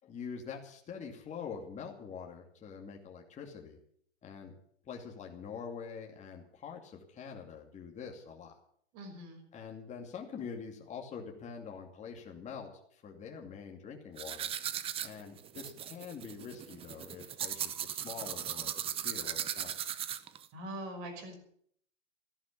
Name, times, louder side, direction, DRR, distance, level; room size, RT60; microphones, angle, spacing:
voice 1, 0.0-3.8 4.2-4.5 4.8-8.6 9.5-14.5 15.0-19.7, left 6 dB, 20° left, 1 dB, 2.6 m, -45 dB
voice 2, 8.9-9.5 20.5-21.3, right 1 dB, 40° right, 5 dB, 5.9 m, -42 dB
sound 1, 14.2-20.5, right 10 dB, 15° right, 0.7 m, -38 dB
14.5 x 11.0 x 8.6 m, 0.64 s
hypercardioid pair, 120°, 36 cm